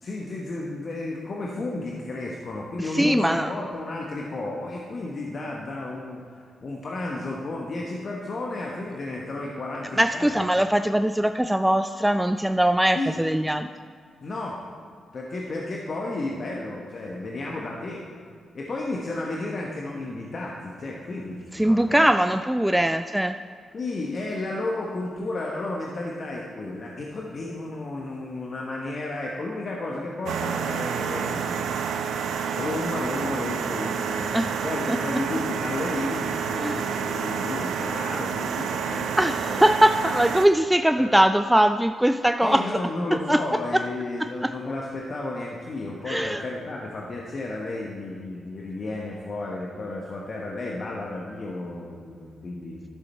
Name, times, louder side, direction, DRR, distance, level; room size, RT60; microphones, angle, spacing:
voice 1, 0.0-10.6 12.9-13.1 14.2-14.6 15.1-18.0 18.5-22.0 23.7-31.6 32.5-39.6 41.0-41.1 42.4-52.8, left 2 dB, 55° left, -2 dB, 1.1 m, -32 dB
voice 2, 2.8-3.5 10.0-13.7 21.5-23.4 34.3-34.5 34.9-35.0 36.6-36.9 39.2-42.6 43.1-43.4 43.7-43.9 44.2-44.5 46.1-46.4, right 1 dB, 5° right, 9 dB, 0.4 m, -21 dB
sound 1, 30.3-40.5, right 7 dB, 75° right, 0.5 m, -29 dB
12.0 x 6.9 x 4.3 m, 2.2 s
hypercardioid pair, 40°, 0 cm